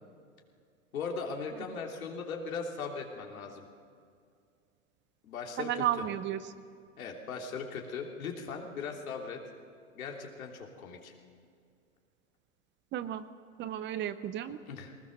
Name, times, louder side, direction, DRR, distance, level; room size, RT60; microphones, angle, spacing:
voice 1, 0.9-3.7 5.2-5.9 7.0-9.4 10.0-11.1 14.7-14.9, left 5 dB, 75° left, 1 dB, 3.3 m, -39 dB
voice 2, 5.6-6.4 12.9-13.2 13.6-14.6, right 11 dB, 25° right, 13 dB, 0.7 m, -33 dB
20.5 x 19.5 x 6.6 m, 2.3 s
hypercardioid pair, 110°, 42 cm